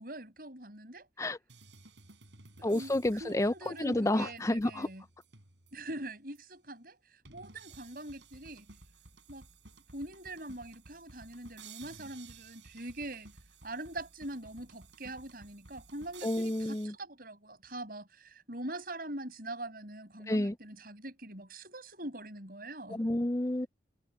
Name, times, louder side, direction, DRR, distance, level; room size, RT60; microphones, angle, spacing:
voice 1, 0.0-1.1 2.6-2.9 3.2-5.0 5.7-7.0 7.3-8.7 9.3-9.5 9.9-13.3 13.6-23.0, right 1 dB, 50° right, 6.8 m, -43 dB
sound 1, 1.5-5.9 6.4-6.5 7.3-16.9, right 4 dB, 75° right, 6.4 m, -55 dB
voice 2, 2.6-4.9 16.2-16.9 20.3-20.6 22.9-23.7, left 1 dB, 15° left, 0.5 m, -30 dB
head